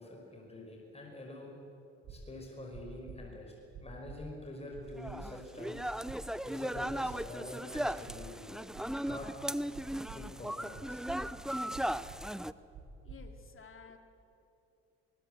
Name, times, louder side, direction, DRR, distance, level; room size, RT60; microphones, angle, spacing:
voice 1, 0.0-1.6 2.1-3.5 3.8-5.9 6.4-8.5 9.1-9.3 10.1-11.0, left 1 dB, 20° left, 0 dB, 5.4 m, -46 dB
sound 1, 2.0-2.2 2.7-3.2 3.7-4.2 4.7-5.2 5.7-6.2 6.7-7.2 7.7-8.2 8.7-9.2 9.7-10.2 10.7-11.2 11.7-12.2 12.7-13.2, right 9 dB, 75° right, 6.4 m, -49 dB
sound 2, 5.0-12.5, equal, ahead, 0.7 m, -37 dB
voice 2, 13.0-14.0, left 5 dB, 45° left, 6 dB, 2.7 m, -53 dB
23.5 x 20.5 x 7.9 m, 2.7 s
supercardioid pair, 70°, 29 cm